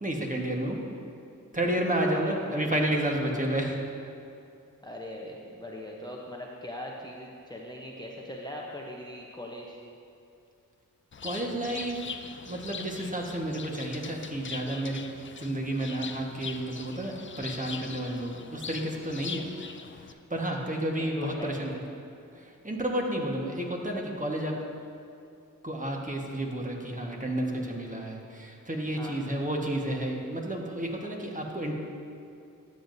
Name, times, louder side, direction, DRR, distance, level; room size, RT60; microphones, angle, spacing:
voice 1, 0.0-0.8 1.5-3.8 11.2-12.0 12.4-15.1 15.4-19.4 20.3-21.7 22.4-24.6 25.6-31.7, right 1 dB, 20° right, 0 dB, 1.3 m, -31 dB
voice 2, 2.1-2.8 4.8-9.8 21.0-21.5 28.9-29.2, left 1 dB, 10° left, -2 dB, 0.8 m, -40 dB
Bird, 11.1-20.1, left 5 dB, 35° left, 0.5 m, -42 dB
12.5 x 7.4 x 2.7 m, 2.5 s
cardioid pair, 50°, 35 cm